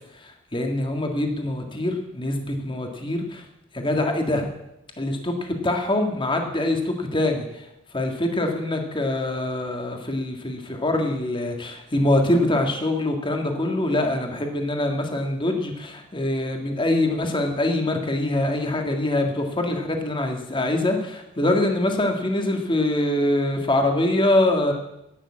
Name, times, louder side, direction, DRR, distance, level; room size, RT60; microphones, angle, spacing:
voice 1, 0.2-3.5 3.7-4.5 5.0-7.7 7.9-24.7, left 1 dB, 25° left, 3 dB, 1.8 m, -24 dB
11.0 x 9.8 x 8.6 m, 0.87 s
head